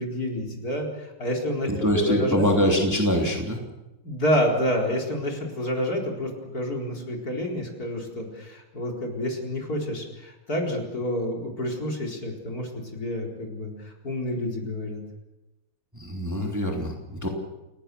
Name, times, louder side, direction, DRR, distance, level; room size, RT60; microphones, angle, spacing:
voice 1, 0.0-1.7 2.0-2.4 4.0-15.0, equal, 45° left, 0 dB, 4.8 m, -29 dB
voice 2, 1.7-3.6 15.9-17.3, equal, 10° right, 1 dB, 3.0 m, -24 dB
29.5 x 18.0 x 7.0 m, 1.0 s
omnidirectional pair, 2.2 m